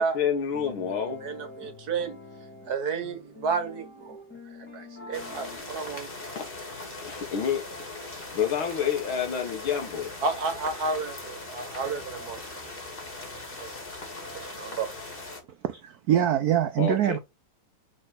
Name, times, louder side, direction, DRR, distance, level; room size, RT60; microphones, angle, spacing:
voice 1, 0.0-1.2 6.3-6.4 7.0-7.6 8.3-10.1 16.8-17.2, left 8 dB, 75° left, 2.3 m, -28 dB
sound 1, 0.5-5.6, left 3 dB, 5° left, 1.8 m, -46 dB
voice 2, 1.2-2.2 2.7-4.2 4.7-6.1 10.2-12.4 12.6-12.7 13.6-13.7 14.3-14.9, right 4 dB, 55° right, 1.5 m, -31 dB
sound 2, 5.1-15.4, left 2 dB, 30° left, 1.8 m, -40 dB
voice 3, 15.6-17.2, right 10 dB, 75° right, 0.8 m, -24 dB
6.0 x 4.3 x 3.8 m
omnidirectional pair, 2.3 m